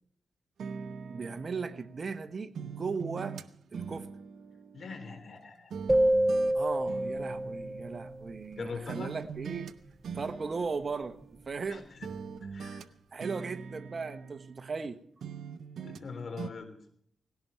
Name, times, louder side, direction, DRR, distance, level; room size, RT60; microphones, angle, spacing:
sound 1, 0.6-2.2 2.5-5.4 5.7-8.6 8.9-9.7 10.0-11.7 12.0-14.9 15.2-16.1 16.4-16.5, right 6 dB, 80° right, 0.8 m, -43 dB
voice 1, 1.1-3.4 3.7-4.1 6.5-9.7 10.1-11.2 11.5-11.9 13.1-15.0, right 4 dB, 50° right, 1.1 m, -37 dB
voice 2, 4.7-5.7 8.5-9.1 11.7-12.1 12.4-12.8 15.8-16.7, left 4 dB, 60° left, 3.7 m, -42 dB
sound 2, 5.9-8.1, right 1 dB, 15° right, 0.6 m, -27 dB
19.0 x 17.0 x 4.5 m
cardioid pair, 70°, 0 cm